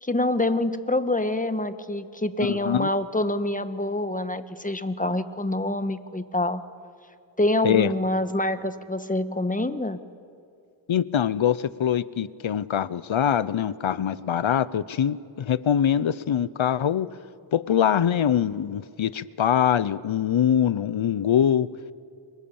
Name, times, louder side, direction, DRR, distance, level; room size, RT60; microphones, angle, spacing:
voice 1, 0.0-6.6 7.4-10.0, left 1 dB, 15° left, 11 dB, 1.4 m, -26 dB
voice 2, 2.4-2.9 7.6-7.9 10.9-17.1 17.5-21.7, left 9 dB, 70° left, 18 dB, 0.8 m, -23 dB
29.0 x 23.5 x 7.2 m, 2.5 s
wide cardioid pair, 65°, 49 cm